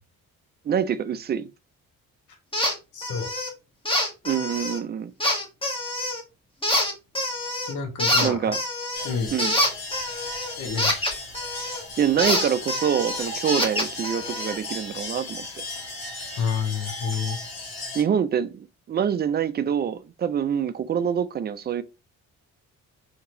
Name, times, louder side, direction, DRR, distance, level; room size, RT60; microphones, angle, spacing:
voice 1, 0.7-1.5 4.2-5.1 8.2-8.6 9.3-9.5 12.0-15.6 17.9-21.8, right 8 dB, 30° right, 0.4 m, -25 dB
sound 1, 2.5-2.7 3.0-3.5 3.9-4.8 5.2-6.2 6.6-7.7 8.0-11.8 12.2-14.6, left 1 dB, 15° left, 1.1 m, -26 dB
voice 2, 2.9-3.3 7.7-8.5 9.0-9.3 10.6-11.2 16.4-17.4, left 6 dB, 60° left, 1.2 m, -29 dB
sound 2, 8.9-18.0, left 2 dB, 85° left, 1.3 m, -36 dB
2.9 x 2.8 x 2.6 m
supercardioid pair, 65°, 34 cm